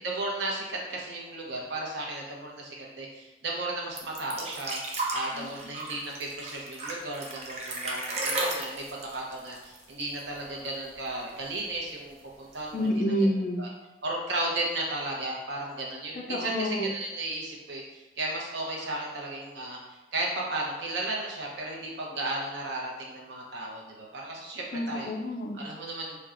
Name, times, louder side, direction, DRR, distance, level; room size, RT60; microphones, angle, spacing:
voice 1, 0.0-4.8 5.1-12.9 13.6-13.7 14.0-19.8 20.1-25.2 25.5-26.2, right 2 dB, 85° right, -2 dB, 0.8 m, -34 dB
sound 1, 4.0-10.4 10.7-10.8 11.1-11.8 12.6-12.7, right 2 dB, 40° right, 0.5 m, -34 dB
voice 2, 5.3-5.7 12.7-13.7 16.1-16.9 24.7-25.6, equal, 45° left, 3 dB, 0.4 m, -29 dB
4.2 x 2.2 x 2.5 m, 1.1 s
head